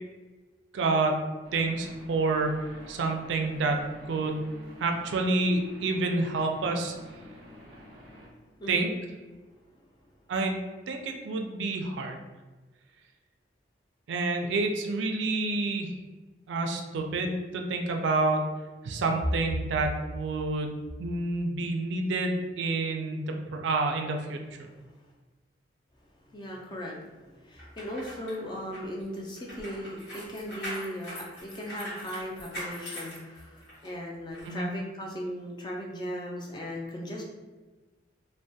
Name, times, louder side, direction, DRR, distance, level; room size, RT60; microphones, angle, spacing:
voice 1, 0.7-1.2 1.5-3.8 4.1-4.5 4.8-7.0 8.7-8.9 10.3-10.6 10.9-12.2 14.1-15.9 16.5-18.4 18.8-24.4 34.4-34.7, right 3 dB, 85° right, 3 dB, 0.3 m, -28 dB
sound 1, 1.4-8.3, equal, 30° right, 0.5 m, -49 dB
voice 2, 26.3-37.2, equal, 25° left, -1 dB, 0.3 m, -38 dB
sound 2, 27.6-33.9 34.3-34.5, equal, 80° left, 1.0 m, -41 dB
2.2 x 2.1 x 2.6 m, 1.2 s
head